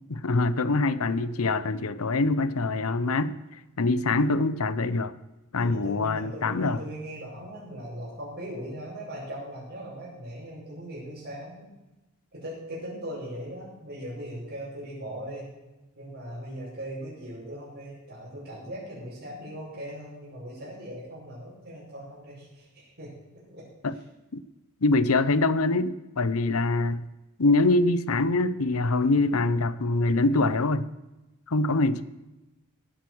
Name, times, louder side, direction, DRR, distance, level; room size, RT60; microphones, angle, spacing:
voice 1, 0.1-3.4 3.8-5.1 5.5-6.8 23.8-23.9 24.3-24.4 24.8-27.0 27.4-30.9 31.5-32.0, left 2 dB, 75° left, 15 dB, 0.8 m, -24 dB
voice 2, 5.6-11.7 12.3-15.5 15.9-24.0, equal, 50° right, -10 dB, 5.9 m, -39 dB
17.5 x 9.3 x 6.3 m, 1.0 s
head